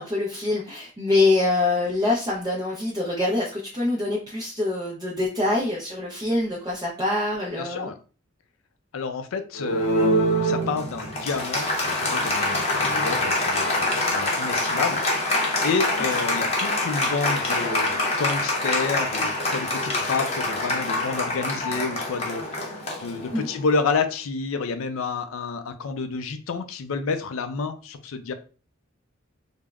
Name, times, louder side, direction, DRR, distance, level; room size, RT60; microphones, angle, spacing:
voice 1, 0.0-7.9 23.3-23.5, left 2 dB, 20° right, -5 dB, 0.5 m, -25 dB
voice 2, 7.6-8.0 8.9-15.3 15.6-22.7 23.0-28.3, left 4 dB, 80° left, 9 dB, 0.4 m, -29 dB
Applause, 9.6-23.6, left 1 dB, 30° left, 0.7 m, -25 dB
3.4 x 2.0 x 2.3 m, 0.36 s
head